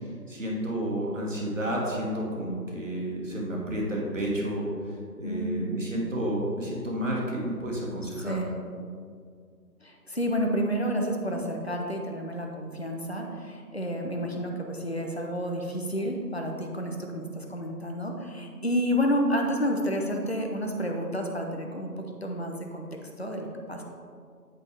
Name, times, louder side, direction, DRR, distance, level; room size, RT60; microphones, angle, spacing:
voice 1, 0.3-4.7 5.2-8.4, right 1 dB, 50° right, -2 dB, 1.6 m, -31 dB
voice 2, 5.2-5.8 8.0-8.5 9.8-22.9 23.2-23.8, equal, 40° left, 1 dB, 0.5 m, -30 dB
8.4 x 5.3 x 3.4 m, 2.2 s
figure-of-eight pair, 170°, 50 cm